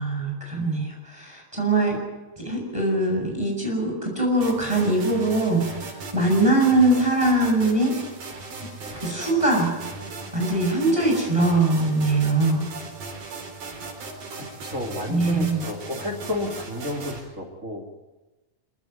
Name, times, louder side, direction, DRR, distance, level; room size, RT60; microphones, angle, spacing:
voice 1, 0.0-2.0 2.4-5.6 6.1-7.9 8.9-9.7 10.3-12.7 15.1-15.6, right 2 dB, 10° right, 0 dB, 7.5 m, -22 dB
sound 1, 4.4-17.2, right 3 dB, 90° right, 5.9 m, -38 dB
voice 2, 14.3-17.9, left 1 dB, 25° right, 1 dB, 2.7 m, -32 dB
26.0 x 15.5 x 9.5 m, 1.1 s
omnidirectional pair, 4.1 m